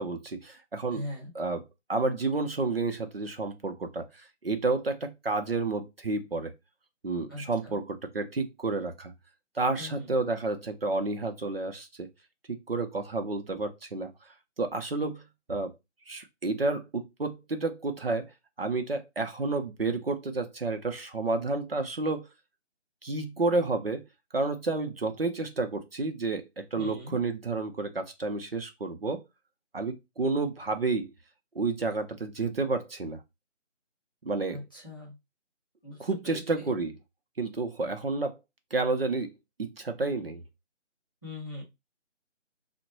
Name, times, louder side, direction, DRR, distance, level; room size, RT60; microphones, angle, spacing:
voice 1, 0.0-1.0 1.3-1.6 1.9-6.5 7.0-9.1 9.5-12.1 12.5-15.7 16.1-22.3 23.0-24.0 24.3-29.2 29.7-31.1 31.5-33.2 34.2-34.6 36.0-36.9 37.4-38.4 38.7-39.3 39.6-40.4, right 3 dB, 50° right, 0.5 m, -30 dB
voice 2, 0.9-1.3 7.3-7.7 9.8-10.1 26.7-27.2 34.5-35.1 35.8-36.0 36.2-36.7 41.2-41.6, left 1 dB, 20° left, 0.7 m, -40 dB
3.4 x 2.1 x 3.0 m
figure-of-eight pair, 165°, 37 cm